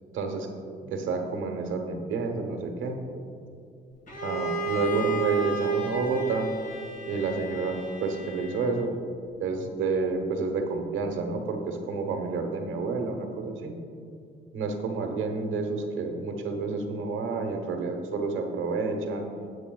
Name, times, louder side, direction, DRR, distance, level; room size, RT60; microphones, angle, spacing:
voice 1, 0.1-0.5 0.8-3.0 4.2-6.5 7.1-8.9 9.4-13.7 14.5-19.3, right 4 dB, 80° right, 4 dB, 1.1 m, -30 dB
Bowed string instrument, 4.1-8.9, right 4 dB, 45° left, 2.2 m, -31 dB
13.0 x 8.5 x 2.3 m, 2.5 s
cardioid pair, 90°, 20 cm